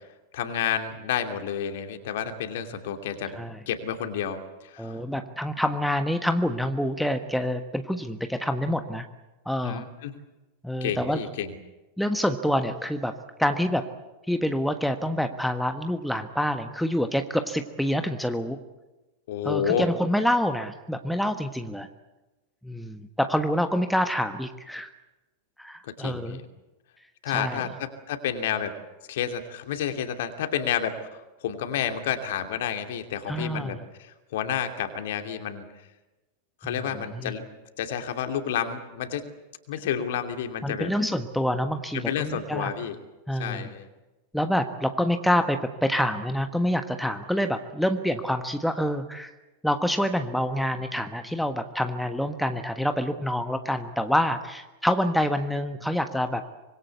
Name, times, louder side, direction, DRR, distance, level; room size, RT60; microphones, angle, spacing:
voice 1, 0.3-3.4 3.7-5.0 9.6-10.2 10.8-11.6 19.3-19.9 25.8-26.4 27.2-28.7 29.1-35.6 36.6-37.4 37.8-39.3 39.7-40.9 41.9-43.0 43.3-43.9, left 9 dB, 55° left, 6 dB, 2.8 m, -30 dB
voice 2, 4.8-9.1 9.4-9.8 10.6-11.2 12.0-13.9 14.3-18.6 19.4-21.9 22.6-24.9 25.6-26.4 27.3-27.7 33.3-33.8 36.6-36.7 37.1-37.3 40.6-42.7 43.3-43.7 44.3-49.3 49.6-56.4, equal, ahead, 7 dB, 1.4 m, -27 dB
25.0 x 22.0 x 8.3 m, 1.1 s
figure-of-eight pair, 90°, 0 cm